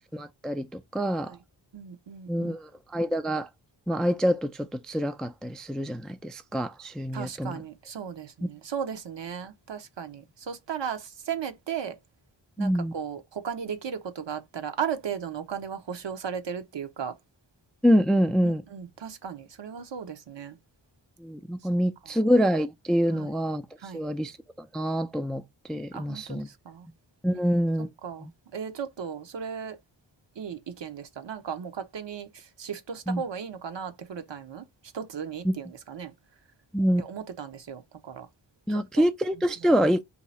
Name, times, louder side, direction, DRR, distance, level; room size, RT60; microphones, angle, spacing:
voice 1, 0.1-1.4 2.3-3.5 3.9-7.6 12.6-12.9 17.8-18.6 21.2-23.6 23.9-26.5 27.2-27.9 28.2-28.3 33.1-33.2 35.4-35.5 36.7-37.0 38.7-40.0, equal, ahead, 0.3 m, -26 dB
voice 2, 1.7-2.6 7.1-12.0 12.6-17.1 18.4-20.6 23.1-23.3 23.8-24.0 25.9-26.9 28.0-29.8 30.4-34.7 34.9-36.1 37.0-38.3 38.9-39.1 39.6-39.7, right 7 dB, 65° right, 0.9 m, -36 dB
2.8 x 2.3 x 4.1 m
cardioid pair, 60°, 46 cm